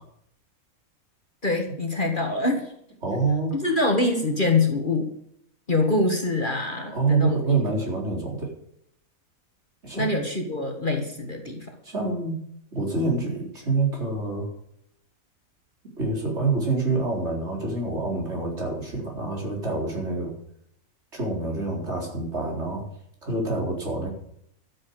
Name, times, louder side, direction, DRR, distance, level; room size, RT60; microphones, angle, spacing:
voice 1, 1.4-2.7 3.5-5.1 5.7-7.4 9.9-11.7, left 2 dB, 35° left, 3 dB, 1.9 m, -24 dB
voice 2, 3.0-3.5 6.9-8.5 9.8-10.1 11.8-12.4 12.7-14.5 16.0-20.3 21.1-22.9 23.2-24.1, right 3 dB, 50° right, -1 dB, 4.4 m, -26 dB
12.5 x 7.9 x 7.9 m, 0.71 s
omnidirectional pair, 1.5 m